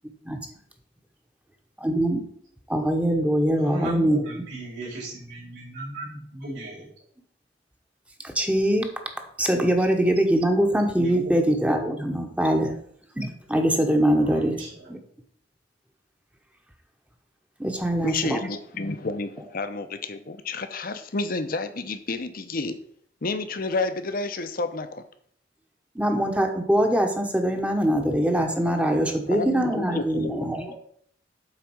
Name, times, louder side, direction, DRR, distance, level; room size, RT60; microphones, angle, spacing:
voice 1, 1.8-2.2 2.7-4.2 8.2-8.9 9.4-12.8 13.2-14.6 14.9-15.0 17.6-18.4 25.9-30.8, right 1 dB, 5° right, 4 dB, 0.9 m, -23 dB
voice 2, 3.6-6.9 11.0-11.4 14.2-15.0, right 1 dB, 75° right, -8 dB, 3.9 m, -36 dB
voice 3, 18.0-22.8 23.2-25.0 28.4-28.8 29.1-30.6, left 3 dB, 50° left, 9 dB, 0.8 m, -30 dB
8.2 x 4.1 x 6.1 m, 0.63 s
head